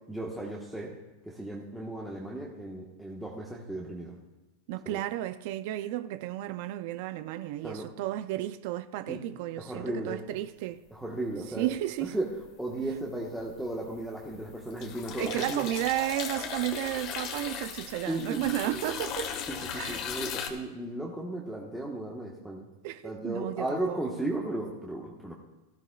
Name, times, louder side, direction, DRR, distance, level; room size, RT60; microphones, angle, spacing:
voice 1, 0.1-0.9 1.2-4.1 4.9-5.0 7.6-7.9 9.1-9.2 9.5-10.2 10.9-11.7 12.0-12.3 12.6-15.6 18.1-18.5 19.5-22.6 23.0-25.3, right 1 dB, 5° right, 1.3 m, -35 dB
voice 2, 4.7-10.8 11.5-12.1 15.2-19.3 19.7-20.1 22.8-24.0, right 14 dB, 60° right, 0.4 m, -33 dB
sound 1, 12.4-12.9 13.3-20.5, left 7 dB, 40° left, 1.4 m, -37 dB
17.5 x 13.0 x 2.4 m
supercardioid pair, 130°, 0 cm